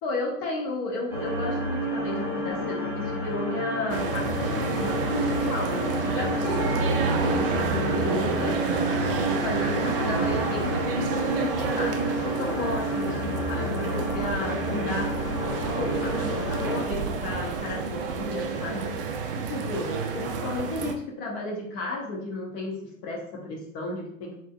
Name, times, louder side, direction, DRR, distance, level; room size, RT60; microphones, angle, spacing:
voice 1, 0.0-6.8 7.3-8.6 9.3-15.1 15.8-18.9 19.3-24.5, left 2 dB, 30° left, -1 dB, 0.8 m, -33 dB
sound 1, 1.1-16.8, equal, 5° right, 1.1 m, -30 dB
sound 2, 3.9-20.9, right 4 dB, 45° right, 0.4 m, -29 dB
3.7 x 2.2 x 2.4 m, 0.71 s
figure-of-eight pair, 100°, 40 cm